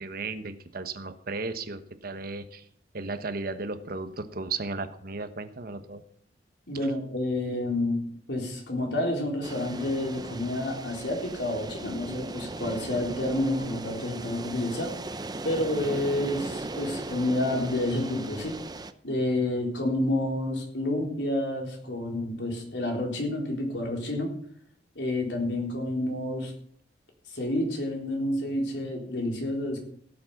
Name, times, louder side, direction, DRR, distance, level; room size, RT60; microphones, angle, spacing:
voice 1, 0.0-2.7 2.9-6.0, right 3 dB, 55° right, 10 dB, 1.1 m, -35 dB
voice 2, 6.7-8.0 8.3-15.0 15.4-18.6 19.0-24.4 25.0-26.5 27.3-29.8, left 1 dB, 85° left, 1 dB, 3.9 m, -29 dB
sound 1, 9.4-18.9, right 2 dB, 25° right, 0.7 m, -38 dB
17.0 x 7.6 x 6.0 m, 0.63 s
head